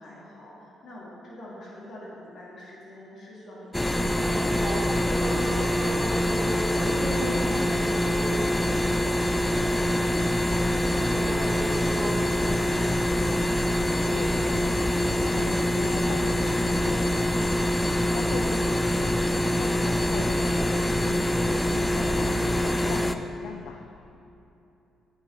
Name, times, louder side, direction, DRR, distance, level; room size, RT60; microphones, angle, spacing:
voice 1, 0.0-10.1 10.5-11.6 14.0-14.1, left 1 dB, 60° left, -6 dB, 2.4 m, -45 dB
sound 1, 3.7-23.1, left 1 dB, 10° left, 0.4 m, -25 dB
sound 2, 4.2-20.2, right 1 dB, 10° right, 1.9 m, -38 dB
voice 2, 14.0-17.3 18.1-19.2 19.6-21.2 21.7-23.8, left 7 dB, 85° left, 5 dB, 0.5 m, -40 dB
8.5 x 4.9 x 7.5 m, 2.8 s
cardioid pair, 90°, 0 cm